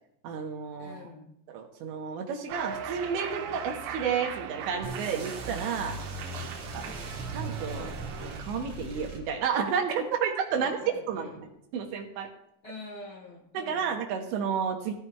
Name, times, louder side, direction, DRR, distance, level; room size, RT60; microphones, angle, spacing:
voice 1, 0.2-1.1 1.5-6.0 6.7-6.8 7.3-7.9 8.2-10.8 11.1-12.3 13.5-14.9, right 6 dB, 75° right, 3 dB, 3.1 m, -31 dB
voice 2, 0.8-1.3 6.3-6.5 6.9-7.2 10.5-11.4 12.6-13.9, left 2 dB, 65° left, 1 dB, 2.5 m, -46 dB
Cheering, 2.5-8.4, right 8 dB, 90° right, 3.4 m, -39 dB
sound 1, 4.8-9.6, right 2 dB, 35° right, 2.7 m, -39 dB
17.5 x 13.5 x 2.4 m, 0.77 s
omnidirectional pair, 5.7 m